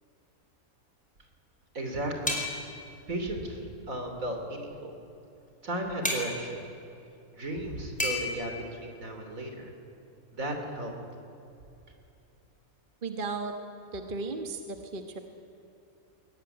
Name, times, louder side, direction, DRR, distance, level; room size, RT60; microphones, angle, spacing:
voice 1, 1.7-2.4 3.1-3.6 3.9-4.9 5.6-6.6 7.3-9.7 10.3-10.9, right 1 dB, 65° right, 4 dB, 3.6 m, -35 dB
sound 1, 2.3-2.8 6.0-6.3 8.0-8.3, left 1 dB, 5° left, 4.7 m, -30 dB
voice 2, 13.0-13.5 13.9-15.2, right 3 dB, 35° right, 5 dB, 1.4 m, -35 dB
22.5 x 18.0 x 9.9 m, 2.8 s
omnidirectional pair, 1.5 m